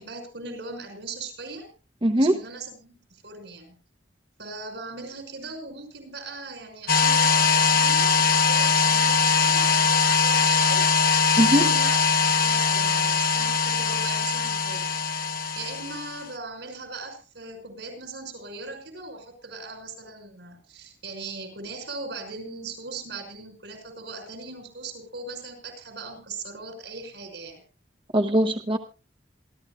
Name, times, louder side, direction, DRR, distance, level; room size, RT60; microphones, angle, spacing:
voice 1, 0.0-1.7 2.1-3.8 4.4-11.2 11.5-12.1 12.4-14.9 15.3-27.6, right 4 dB, 80° right, 5 dB, 5.9 m, -39 dB
voice 2, 2.0-2.4 11.4-11.6 28.1-28.8, equal, 30° right, 5 dB, 0.9 m, -20 dB
sound 1, 6.9-16.2, left 5 dB, 55° left, 1.1 m, -21 dB
27.5 x 12.5 x 2.3 m, 0.33 s
head